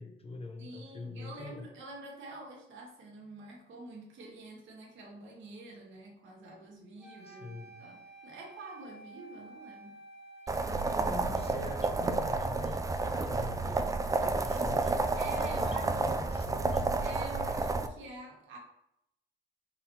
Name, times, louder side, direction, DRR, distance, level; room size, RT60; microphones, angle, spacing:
voice 1, 0.0-1.7 7.2-7.7 11.0-13.9 14.2-15.0 15.5-16.9, left 3 dB, 30° left, 4 dB, 0.7 m, -44 dB
voice 2, 0.6-10.0 15.2-16.1 17.0-18.6, right 2 dB, 75° right, 0 dB, 1.2 m, -47 dB
sound 1, 7.0-15.1, right 2 dB, ahead, 1.2 m, -53 dB
sound 2, 10.5-17.9, right 3 dB, 15° right, 0.4 m, -30 dB
4.1 x 3.7 x 2.9 m, 0.81 s
cardioid pair, 90°, 20 cm